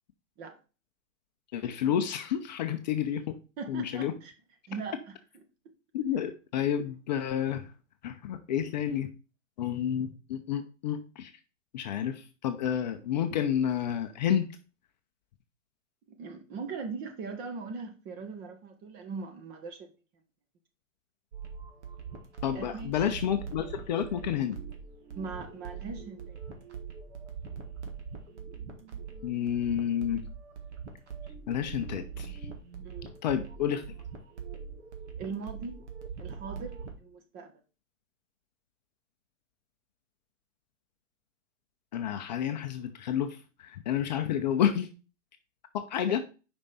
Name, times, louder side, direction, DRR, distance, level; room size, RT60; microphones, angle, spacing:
voice 1, 1.5-3.4 3.7-4.1 5.9-7.7 8.0-9.1 9.6-11.3 11.7-14.5 22.4-24.6 29.2-30.2 31.5-32.4 33.2-33.8 41.9-43.4 43.6-44.9 45.7-46.2, left 9 dB, 35° left, 0.6 m, -30 dB
voice 2, 3.6-4.3 4.7-5.2 16.1-19.8 22.5-22.9 25.2-26.4 32.8-33.1 35.2-35.8 36.2-37.5 46.1-46.2, right 4 dB, 25° right, 1.0 m, -40 dB
sound 1, 21.3-36.9, right 6 dB, 60° right, 1.7 m, -42 dB
5.2 x 5.2 x 4.1 m
hypercardioid pair, 125°, 39 cm